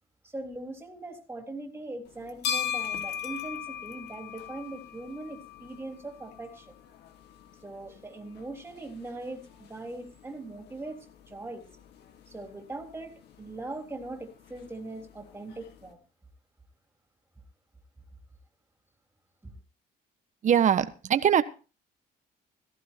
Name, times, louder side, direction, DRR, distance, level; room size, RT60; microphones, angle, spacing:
voice 1, 0.2-6.7 7.6-11.0 11.3-11.7 12.3-16.0 19.4-19.5, right 2 dB, 15° right, 3.4 m, -40 dB
sound 1, 2.1-15.9, left 8 dB, 80° left, 1.9 m, -40 dB
voice 2, 20.4-21.4, right 9 dB, 45° right, 1.2 m, -22 dB
18.0 x 15.0 x 2.9 m
cardioid pair, 110°, 17 cm